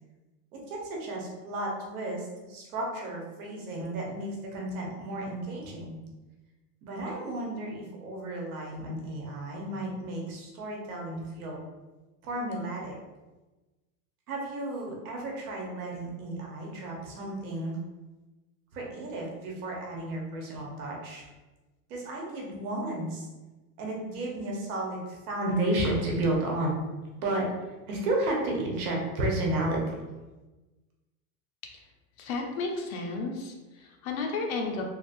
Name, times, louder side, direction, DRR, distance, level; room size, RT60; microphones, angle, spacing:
voice 1, 0.5-5.9 6.8-11.6 12.2-13.0 14.3-17.8 18.7-21.3 21.9-23.3 23.8-26.8 27.2-27.4 27.9-30.0, right 1 dB, 65° right, -2 dB, 1.1 m, -32 dB
voice 2, 32.2-34.8, left 3 dB, 65° left, 1 dB, 0.8 m, -33 dB
3.2 x 2.8 x 2.6 m, 1.2 s
supercardioid pair, 170°, 46 cm